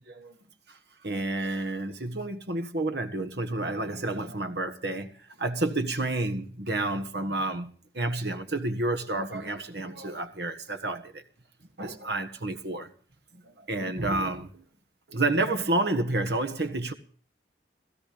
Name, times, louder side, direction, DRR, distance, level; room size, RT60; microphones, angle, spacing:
voice 1, 1.0-5.1 5.4-11.2 11.8-12.9 13.4-14.6 15.1-16.9, right 2 dB, 70° right, 1.7 m, -30 dB
16.5 x 15.5 x 5.2 m
head